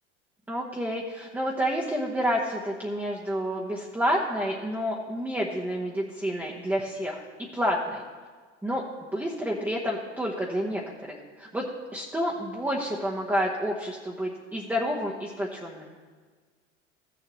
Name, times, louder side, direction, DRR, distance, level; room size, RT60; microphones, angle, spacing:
voice 1, 0.5-8.0 8.6-8.8 9.1-10.8 11.1-11.7 11.9-15.9, equal, 5° right, -3 dB, 1.0 m, -29 dB
16.0 x 7.0 x 3.1 m, 1.5 s
figure-of-eight pair, 75°, 35 cm